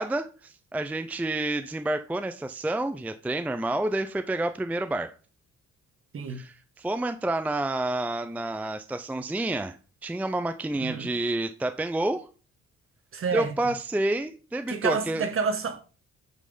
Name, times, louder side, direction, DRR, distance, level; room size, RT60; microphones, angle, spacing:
voice 1, 0.0-5.1 6.3-9.8 10.0-12.3 13.3-15.3, right 2 dB, 5° right, 0.4 m, -29 dB
voice 2, 10.8-11.1 13.1-13.5 14.7-15.8, right 5 dB, 45° right, 1.3 m, -29 dB
8.3 x 3.3 x 5.5 m
cardioid pair, 90°, 30 cm